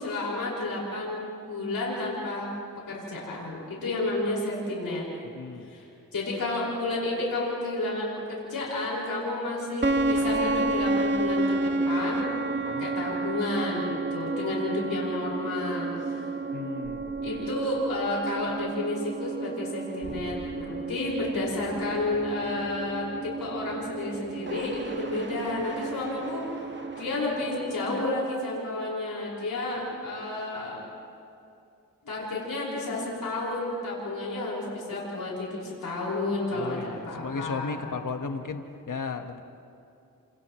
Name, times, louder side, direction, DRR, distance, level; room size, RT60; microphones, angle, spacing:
voice 1, 0.0-2.5 2.9-5.0 5.6-5.9 6.1-12.3 12.6-16.3 17.2-26.4 27.0-30.8 32.1-37.8, left 2 dB, 90° left, -5 dB, 5.7 m, -31 dB
voice 2, 5.2-5.7 12.6-12.9 16.5-17.6 36.5-39.4, left 4 dB, 65° left, 5 dB, 1.5 m, -35 dB
sound 1, 9.8-28.2, right 2 dB, 35° right, 1.8 m, -31 dB
30.0 x 27.0 x 3.2 m, 2.5 s
cardioid pair, 50°, 33 cm